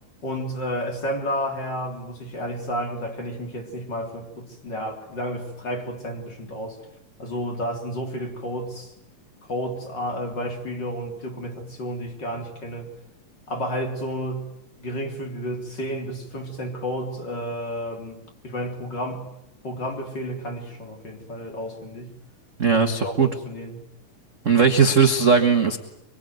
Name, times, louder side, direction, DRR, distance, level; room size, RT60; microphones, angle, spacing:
voice 1, 0.2-6.8 7.2-8.9 9.5-12.9 13.5-14.5 14.8-19.3 19.6-22.1 22.7-23.8, equal, 30° left, 4.0 m, -31 dB
voice 2, 22.6-23.3 24.4-25.8, right 5 dB, 45° right, 1.0 m, -18 dB
24.5 x 24.5 x 9.3 m
omnidirectional pair, 3.8 m